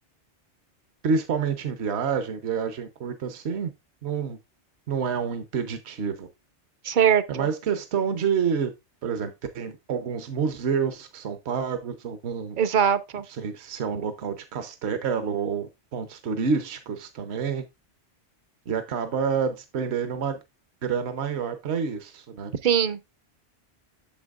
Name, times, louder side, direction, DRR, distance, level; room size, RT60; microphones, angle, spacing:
voice 1, 1.0-3.7 4.0-4.4 4.9-6.3 7.3-8.7 9.0-12.6 13.4-17.6 18.7-20.4 20.8-22.5, right 6 dB, 70° right, 1.1 m, -28 dB
voice 2, 6.8-7.5 12.6-13.2 22.6-23.0, right 8 dB, 55° right, 0.6 m, -21 dB
8.7 x 6.9 x 2.4 m
omnidirectional pair, 1.1 m